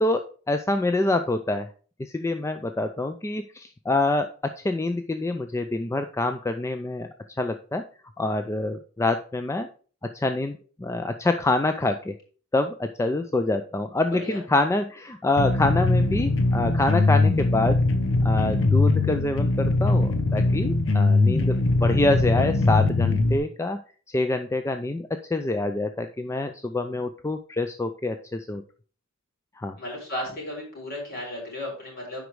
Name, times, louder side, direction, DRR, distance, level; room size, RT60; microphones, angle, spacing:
voice 1, 0.0-1.7 2.0-4.3 4.6-7.1 7.4-7.8 8.2-9.7 10.1-12.2 12.5-17.8 18.2-23.8 24.1-28.6 29.6-29.8, left 2 dB, 15° left, 7 dB, 0.4 m, -26 dB
voice 2, 14.1-14.4 29.8-32.2, left 1 dB, 45° left, -2 dB, 4.3 m, -34 dB
sound 1, 15.4-23.4, left 2 dB, 65° left, 0.9 m, -21 dB
8.0 x 5.2 x 4.7 m, 0.41 s
head